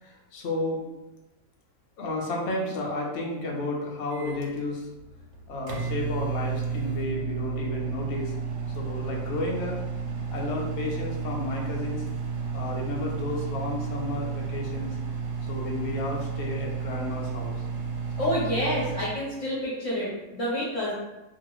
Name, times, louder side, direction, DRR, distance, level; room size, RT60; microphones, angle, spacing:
voice 1, 0.0-0.9 2.0-4.9 5.5-8.3 8.7-9.8 10.3-12.0 12.5-14.9 15.5-17.5, left 2 dB, 80° left, -1 dB, 0.6 m, -32 dB
Microwave oven, 4.1-19.2, right 6 dB, 90° right, 1.3 m, -32 dB
voice 2, 18.2-20.9, equal, 60° left, -7 dB, 0.9 m, -28 dB
2.8 x 2.7 x 2.9 m, 1.0 s
omnidirectional pair, 2.0 m